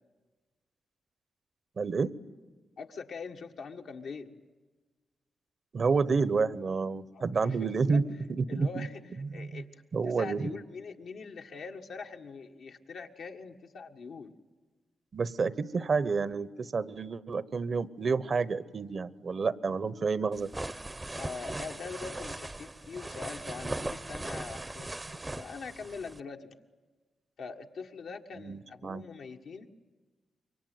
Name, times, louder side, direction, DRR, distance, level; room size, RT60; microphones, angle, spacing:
voice 1, 1.8-2.1 5.7-8.0 8.3-8.9 9.4-9.6 9.9-10.6 15.1-20.5 28.4-29.0, right 4 dB, 55° right, 17 dB, 1.0 m, -29 dB
voice 2, 2.8-4.4 7.1-8.0 8.5-14.3 21.2-26.6 27.4-29.7, left 5 dB, 75° left, 3 dB, 1.6 m, -43 dB
sound 1, 20.3-26.2, right 2 dB, 20° right, 0.7 m, -39 dB
25.5 x 23.5 x 9.3 m, 1.3 s
cardioid pair, 60°, 0 cm